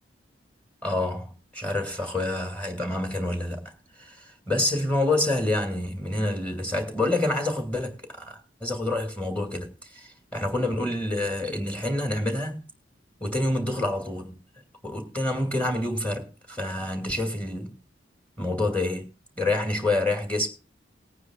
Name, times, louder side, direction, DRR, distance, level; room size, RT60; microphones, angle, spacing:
voice 1, 0.8-3.6 4.0-12.6 13.2-14.4 14.8-17.8 18.4-20.5, left 2 dB, 10° left, 2.3 m, -27 dB
19.5 x 9.4 x 2.4 m
head